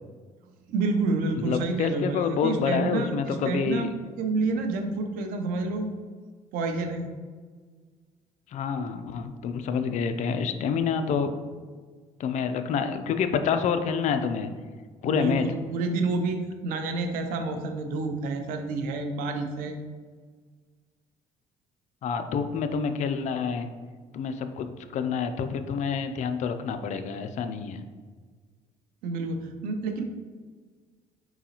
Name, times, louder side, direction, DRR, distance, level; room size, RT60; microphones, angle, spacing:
voice 1, 0.7-5.9 6.5-7.1 15.0-19.8 29.0-30.0, right 3 dB, 90° right, 6 dB, 0.6 m, -29 dB
voice 2, 1.4-3.9 8.5-11.3 12.2-14.5 15.0-15.5 22.0-23.7 24.1-24.7 24.9-27.8, left 6 dB, 55° left, 8 dB, 0.4 m, -27 dB
4.7 x 3.9 x 2.9 m, 1.5 s
cardioid pair, 115°, 14 cm